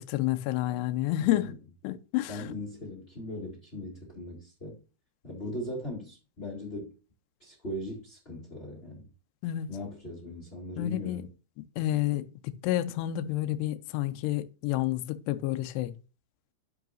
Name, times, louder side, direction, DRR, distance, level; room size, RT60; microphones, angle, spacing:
voice 1, 0.0-1.6 1.8-2.4 9.4-9.7 10.8-11.3 11.8-15.9, left 14 dB, 85° left, 2.4 m, -30 dB
voice 2, 2.3-4.8 5.2-6.9 7.4-9.1 9.7-11.3, left 1 dB, 40° left, 0.8 m, -39 dB
12.0 x 4.9 x 2.5 m
omnidirectional pair, 5.5 m